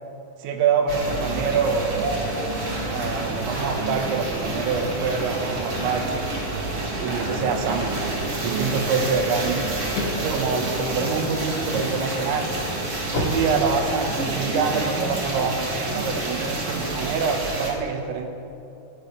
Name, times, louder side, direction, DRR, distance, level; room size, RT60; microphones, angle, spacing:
voice 1, 0.4-2.2 2.9-6.3 7.0-8.0 8.4-9.7 10.2-12.5 13.1-18.3, right 5 dB, 85° right, 3 dB, 3.7 m, -26 dB
sound 1, 0.9-17.7, right 2 dB, 40° right, 2.5 m, -28 dB
sound 2, 9.9-11.6 12.1-14.3, left 2 dB, 80° left, 4.3 m, -30 dB
28.5 x 13.0 x 3.3 m, 2.8 s
omnidirectional pair, 5.1 m